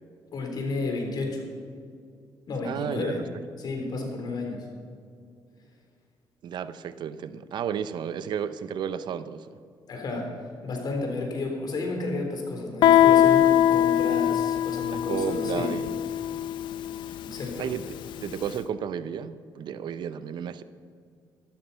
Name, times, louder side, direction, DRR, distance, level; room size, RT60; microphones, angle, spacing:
voice 1, 0.3-1.4 2.5-3.2 3.6-4.7 9.9-10.3 10.6-15.8 17.2-17.7, left 3 dB, 60° left, 3.8 m, -32 dB
voice 2, 2.6-3.4 6.4-9.6 14.9-16.0 16.3-16.5 17.6-17.9 18.2-20.6, right 8 dB, 70° right, 0.7 m, -33 dB
Guitar, 12.8-18.3, left 11 dB, 80° left, 0.5 m, -22 dB
13.0 x 12.5 x 5.6 m
cardioid pair, 80°, 8 cm